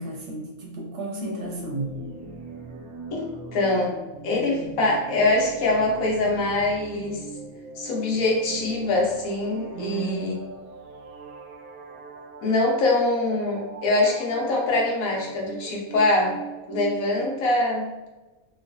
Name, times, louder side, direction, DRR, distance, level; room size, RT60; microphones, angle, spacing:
voice 1, 0.0-2.0 9.7-10.3, right 2 dB, 65° right, -1 dB, 0.9 m, -32 dB
sound 1, 1.4-17.5, right 4 dB, 85° right, 1.0 m, -40 dB
voice 2, 3.1-3.9 4.2-7.2 7.8-10.3 12.4-16.4 16.7-17.9, left 2 dB, 75° left, -1 dB, 1.2 m, -23 dB
3.0 x 2.3 x 2.5 m, 1.1 s
omnidirectional pair, 1.5 m